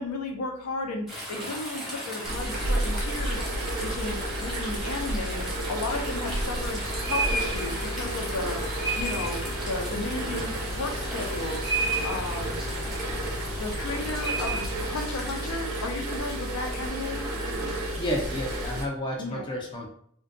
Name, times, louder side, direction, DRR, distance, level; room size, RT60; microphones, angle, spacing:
voice 1, 0.0-3.5 3.8-6.8 7.1-8.6 8.9-9.4 9.7-11.7 12.0-12.8 13.5-17.2 19.2-19.4, left 2 dB, 80° left, 3 dB, 0.5 m, -34 dB
sound 1, 1.1-18.8, right 2 dB, ahead, 0.8 m, -35 dB
sound 2, 2.2-18.9, right 1 dB, 75° right, 0.5 m, -32 dB
voice 2, 18.0-19.9, equal, 20° left, -1 dB, 0.4 m, -31 dB
2.5 x 2.1 x 2.5 m, 0.65 s
head